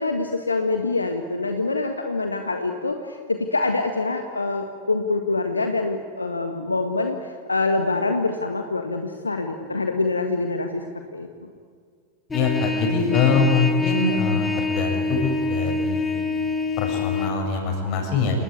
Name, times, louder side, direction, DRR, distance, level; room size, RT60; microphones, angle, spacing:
voice 1, 0.0-10.8 11.1-11.5, left 3 dB, 80° left, 5 dB, 1.6 m, -25 dB
voice 2, 12.3-16.1 16.8-18.4, left 4 dB, 40° left, 3 dB, 7.6 m, -23 dB
Trumpet, 12.3-17.3, left 3 dB, 15° left, 2.2 m, -26 dB
28.5 x 19.5 x 9.8 m, 2.1 s
figure-of-eight pair, 90°, 0 cm